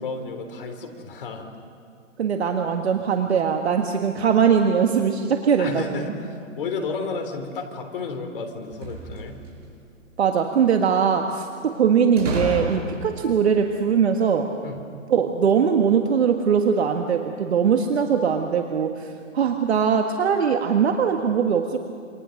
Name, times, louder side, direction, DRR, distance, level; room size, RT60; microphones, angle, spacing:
voice 1, 0.0-1.5 5.6-9.4 14.6-14.8, left 4 dB, 45° left, 4 dB, 3.5 m, -32 dB
voice 2, 2.2-6.0 10.2-14.5 15.1-19.1 19.3-21.8, right 7 dB, 55° right, 4 dB, 1.7 m, -21 dB
sound 1, 8.6-9.7 12.2-13.2, right 2 dB, 70° right, 7.6 m, -30 dB
28.0 x 26.0 x 6.5 m, 2.3 s
hypercardioid pair, 155°, 38 cm